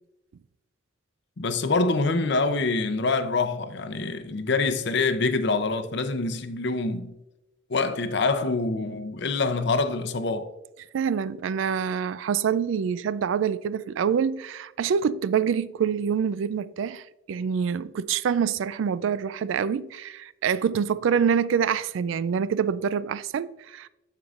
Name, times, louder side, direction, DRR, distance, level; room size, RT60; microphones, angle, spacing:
voice 1, 1.4-7.1 7.7-10.5, left 3 dB, 60° left, 0.6 m, -25 dB
voice 2, 10.9-23.9, right 7 dB, 70° right, 0.3 m, -26 dB
12.5 x 4.6 x 2.5 m
head